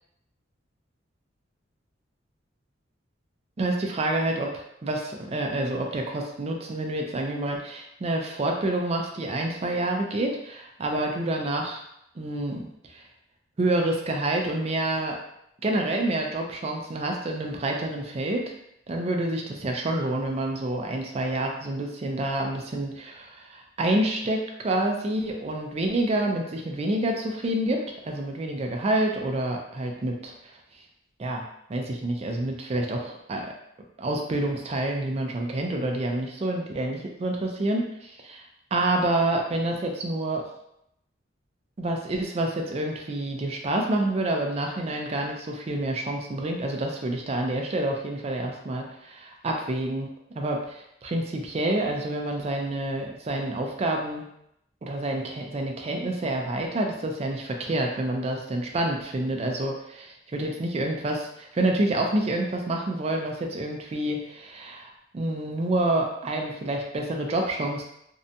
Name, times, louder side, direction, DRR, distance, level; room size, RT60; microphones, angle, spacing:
voice 1, 3.6-11.8 12.2-12.6 12.9-13.0 13.6-15.1 15.6-18.5 18.9-30.3 31.2-31.4 31.7-33.5 34.0-38.4 38.7-40.5 41.8-50.1 50.3-54.2 54.8-67.8, right 1 dB, 35° right, 2 dB, 0.4 m, -28 dB
2.6 x 2.2 x 2.6 m, 0.78 s
head